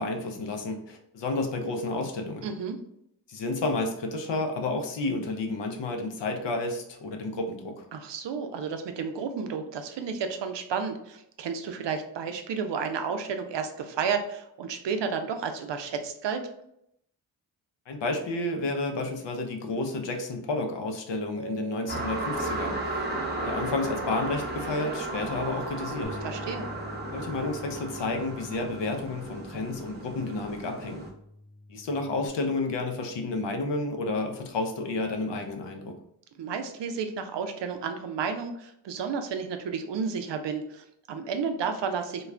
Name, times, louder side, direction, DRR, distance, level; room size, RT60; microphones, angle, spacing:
voice 1, 0.0-2.5 3.3-7.8 17.9-23.1 23.4-26.2 27.1-31.0 31.7-35.9, left 2 dB, 65° left, 4 dB, 0.7 m, -31 dB
voice 2, 2.4-2.8 7.9-16.4 26.2-26.7 36.4-42.3, right 6 dB, 65° right, 6 dB, 0.6 m, -32 dB
Mallet percussion, 21.4-24.4, right 8 dB, 30° left, 1.1 m, -45 dB
sound 1, 21.9-31.1, right 2 dB, 20° right, 0.7 m, -34 dB
Bass guitar, 26.0-32.3, left 2 dB, 10° left, 0.4 m, -46 dB
2.3 x 2.3 x 3.2 m, 0.75 s
supercardioid pair, 40°, 47 cm